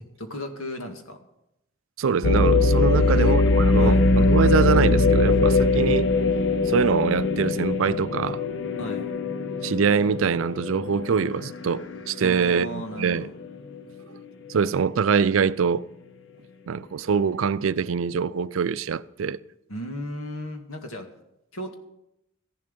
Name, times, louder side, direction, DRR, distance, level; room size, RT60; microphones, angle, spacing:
voice 1, 0.2-1.3 2.9-3.3 3.8-4.0 8.8-9.1 12.2-13.3 19.7-21.1 21.5-21.7, equal, 90° left, 2.0 m, -35 dB
voice 2, 2.0-6.1 6.7-8.4 9.6-13.3 14.5-15.9 16.7-19.4, right 6 dB, 75° right, 0.4 m, -24 dB
sound 1, 2.2-12.2 12.7-12.8 13.4-13.8, left 3 dB, 60° left, 0.8 m, -21 dB
14.5 x 11.0 x 5.3 m
head